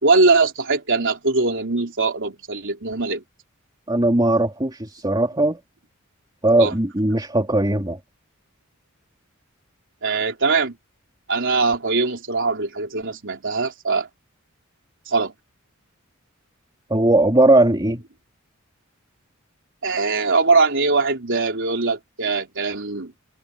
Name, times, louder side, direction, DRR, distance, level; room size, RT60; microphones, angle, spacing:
voice 1, 0.0-3.2 6.6-6.7 10.0-10.7 11.3-14.1 15.1-15.3 19.8-23.1, right 3 dB, 60° right, 3.9 m, -21 dB
voice 2, 3.9-5.6 6.4-8.0 16.9-18.0, right 2 dB, 20° right, 3.2 m, -18 dB
head